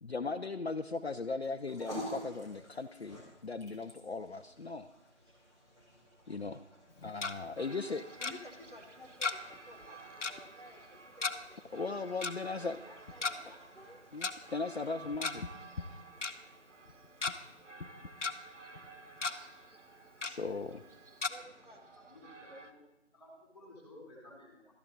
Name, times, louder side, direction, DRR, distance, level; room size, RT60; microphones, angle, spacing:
voice 1, 0.0-4.9 6.3-6.6 7.0-8.1 11.7-12.8 14.1-15.4 15.9-16.0 20.2-20.8, left 4 dB, 60° left, 9 dB, 0.6 m, -38 dB
sound 1, 1.4-17.9, equal, 25° right, 2.0 m, -52 dB
Tick-tock, 6.9-7.3 8.2-8.3 9.2-9.6 9.8-9.9 10.2-10.4 11.2-11.3 12.2-12.3 13.1-13.3 14.2-14.3 15.0-15.5 15.8-15.9 16.2-16.3 16.9-17.3 17.8-18.3 18.8-18.9 19.2-19.3 20.2-20.3 21.2-21.3, left 4 dB, 80° left, 0.9 m, -34 dB
sound 2, 7.6-22.7, right 3 dB, 80° right, 1.2 m, -54 dB
voice 2, 8.2-11.8 12.9-14.0 21.3-21.8, equal, 45° right, 2 dB, 1.4 m, -54 dB
voice 3, 21.9-22.8 23.1-24.6, left 1 dB, 25° left, -3 dB, 3.6 m, -54 dB
12.5 x 10.5 x 4.0 m, 0.94 s
figure-of-eight pair, 175°, 36 cm